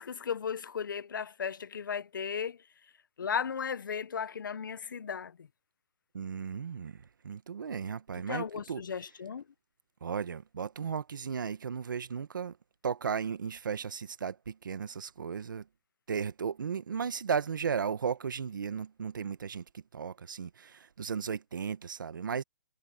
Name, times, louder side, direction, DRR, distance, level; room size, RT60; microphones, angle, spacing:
voice 1, 0.0-2.6 3.2-5.5 8.3-9.4, left 7 dB, 90° left, 0.8 m, -35 dB
voice 2, 6.1-8.8 10.0-12.6 12.8-15.7 16.1-22.4, right 6 dB, 85° right, 1.4 m, -35 dB
hypercardioid pair, 170°, 10 cm